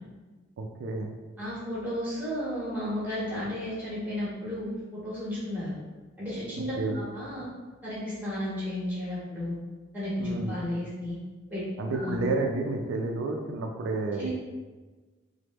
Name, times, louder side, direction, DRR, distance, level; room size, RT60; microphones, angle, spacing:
voice 1, 0.6-1.1 6.6-7.0 10.2-10.6 11.8-14.3, right 3 dB, 90° right, 2 dB, 0.3 m, -30 dB
voice 2, 1.4-5.7 6.2-7.5 7.8-9.6 9.9-11.2 11.5-11.6 11.9-12.2 14.2-14.3, left 1 dB, 10° right, -9 dB, 1.1 m, -33 dB
3.3 x 2.1 x 3.0 m, 1.3 s
head